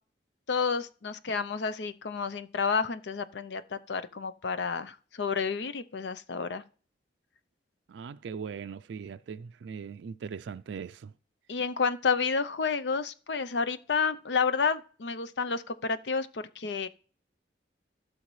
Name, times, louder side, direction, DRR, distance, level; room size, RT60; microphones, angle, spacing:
voice 1, 0.5-6.6 11.5-16.9, left 5 dB, 80° left, 0.6 m, -30 dB
voice 2, 7.9-11.1, right 6 dB, 90° right, 0.4 m, -40 dB
16.0 x 6.3 x 3.2 m
head